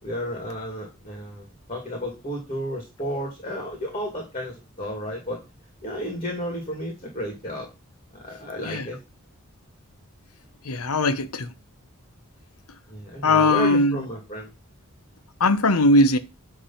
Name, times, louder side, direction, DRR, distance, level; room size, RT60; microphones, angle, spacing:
voice 1, 0.0-5.4 5.8-7.7 8.1-9.0 12.9-14.5, equal, 25° left, 2.5 m, -32 dB
voice 2, 10.6-11.5 13.2-14.0 15.4-16.2, left 2 dB, 85° left, 0.9 m, -19 dB
10.0 x 3.6 x 5.6 m
head